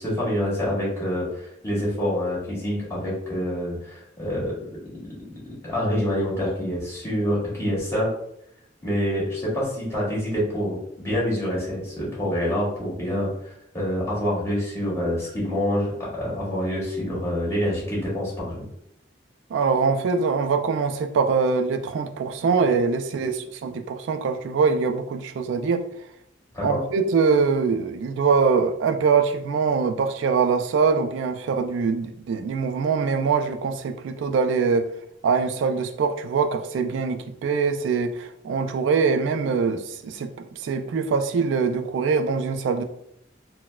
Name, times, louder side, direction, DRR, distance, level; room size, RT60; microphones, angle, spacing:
voice 1, 0.0-4.6 5.6-8.1 8.8-18.6 26.5-26.8, equal, 15° left, -7 dB, 1.5 m, -26 dB
voice 2, 19.5-25.8 26.6-34.9 35.2-42.8, right 5 dB, 80° right, 7 dB, 0.3 m, -23 dB
4.1 x 2.2 x 2.2 m, 0.75 s
head